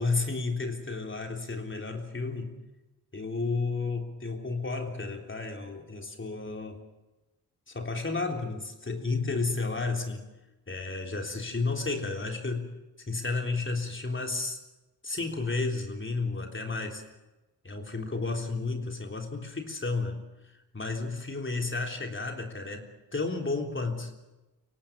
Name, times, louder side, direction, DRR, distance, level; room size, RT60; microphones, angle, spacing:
voice 1, 0.0-2.6 3.1-6.8 7.7-10.2 10.7-12.7 13.1-14.6 15.0-17.0 17.6-24.1, left 3 dB, 35° left, 3 dB, 3.6 m, -32 dB
24.5 x 17.5 x 7.5 m, 1.0 s
cardioid pair, 75°, 36 cm